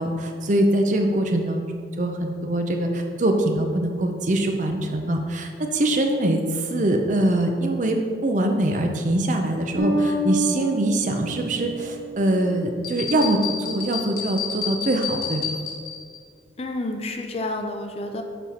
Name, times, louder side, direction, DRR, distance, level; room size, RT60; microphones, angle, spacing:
voice 1, 0.0-8.0 8.2-15.6, right 1 dB, 45° right, 4 dB, 0.6 m, -23 dB
Bass guitar, 9.8-12.8, right 1 dB, 85° right, 1.8 m, -28 dB
sound 1, 12.8-16.2, left 6 dB, 55° left, 1.2 m, -30 dB
voice 2, 16.6-18.2, left 2 dB, 35° left, 4 dB, 0.5 m, -29 dB
7.0 x 4.4 x 4.3 m, 2.1 s
head